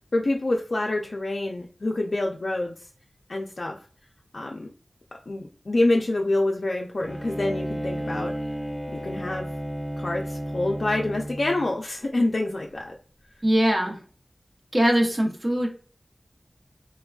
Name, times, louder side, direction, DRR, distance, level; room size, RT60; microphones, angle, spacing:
voice 1, 0.1-2.8 3.3-3.8 4.3-4.7 5.3-8.3 8.9-9.5 10.0-12.9, left 2 dB, 60° left, 0 dB, 0.3 m, -26 dB
Bowed string instrument, 7.0-11.7, equal, 15° right, 1.1 m, -33 dB
voice 2, 13.4-14.0 14.7-15.7, right 1 dB, 35° right, 0 dB, 0.7 m, -21 dB
3.3 x 2.2 x 2.2 m, 0.42 s
wide cardioid pair, 55°, 0 cm